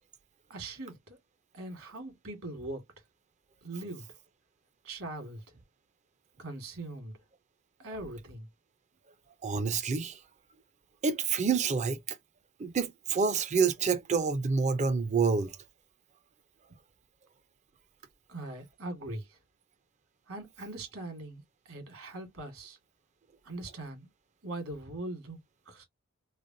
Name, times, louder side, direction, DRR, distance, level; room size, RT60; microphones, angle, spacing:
voice 1, 0.5-1.2 1.5-2.8 3.6-4.0 4.8-5.4 6.4-7.2 7.8-8.5 18.3-19.4 20.3-22.8 23.4-24.1 24.4-25.4 25.7-25.8, right 2 dB, 70° right, 1.5 m, -41 dB
voice 2, 9.4-10.2 11.0-12.2 12.6-15.5, right 5 dB, 35° right, 0.4 m, -28 dB
3.2 x 2.2 x 2.5 m
head